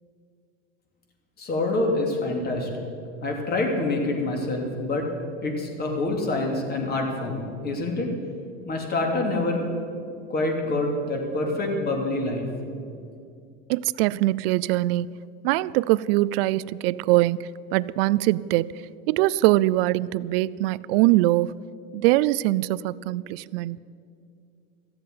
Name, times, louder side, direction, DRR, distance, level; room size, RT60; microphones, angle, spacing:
voice 1, 1.4-2.9 3.2-5.1 5.4-8.1 8.7-9.6 10.3-12.4, left 2 dB, 35° left, 2 dB, 2.8 m, -26 dB
voice 2, 13.7-15.2 15.4-18.7 19.1-21.6 21.9-23.8, right 17 dB, 75° right, 20 dB, 0.5 m, -22 dB
14.5 x 7.8 x 9.3 m, 2.4 s
supercardioid pair, 125°, 30 cm